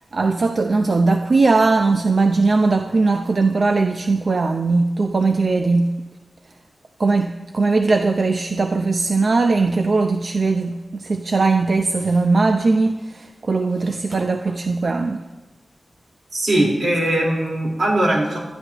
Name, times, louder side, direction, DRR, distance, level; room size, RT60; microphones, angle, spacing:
voice 1, 0.1-5.9 7.0-15.2, right 3 dB, 50° right, 0.6 m, -19 dB
voice 2, 16.3-18.4, right 1 dB, 75° right, 4.2 m, -20 dB
26.0 x 12.5 x 3.0 m
wide cardioid pair, 115°, 0 cm